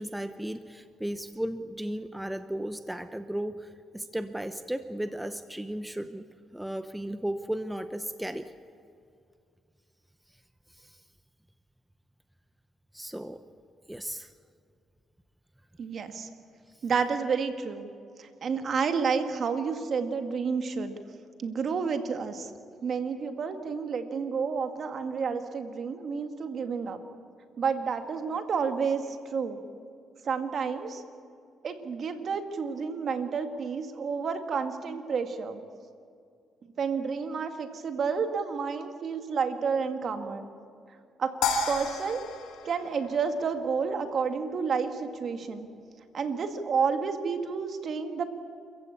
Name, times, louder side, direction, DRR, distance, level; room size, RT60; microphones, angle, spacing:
voice 1, 0.0-6.3 6.5-8.5 10.8-11.0 12.9-13.4 13.9-14.3, right 1 dB, 5° right, 10 dB, 0.9 m, -35 dB
voice 2, 15.8-16.3 16.8-17.9 18.2-20.9 21.4-22.5 22.8-27.0 27.6-29.1 29.3-29.6 30.2-31.0 31.6-35.6 36.8-40.5 41.2-41.3 41.7-42.2 42.6-45.7 46.1-48.2, right 5 dB, 55° right, 7 dB, 2.0 m, -30 dB
sound 1, 41.4-43.8, left 4 dB, 85° left, 2.6 m, -32 dB
27.5 x 15.0 x 8.6 m, 2.4 s
cardioid pair, 90°, 0 cm